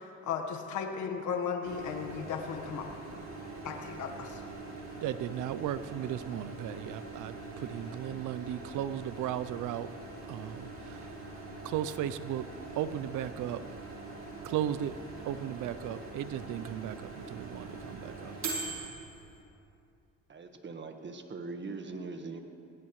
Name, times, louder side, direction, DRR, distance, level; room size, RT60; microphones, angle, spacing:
voice 1, 0.0-2.9 3.6-4.4, left 6 dB, 75° left, 3 dB, 1.6 m, -35 dB
Microwave oven, 1.6-19.4, right 3 dB, 60° right, 4.5 m, -43 dB
voice 2, 5.0-9.9 10.3-11.3 11.6-12.5 12.7-13.6 14.4-14.9 15.2-18.4 18.7-18.8, right 11 dB, 85° right, 14 dB, 0.6 m, -36 dB
voice 3, 20.3-22.4, right 3 dB, 40° right, 5 dB, 1.5 m, -41 dB
22.5 x 18.0 x 3.2 m, 2.6 s
cardioid pair, 90°, 30 cm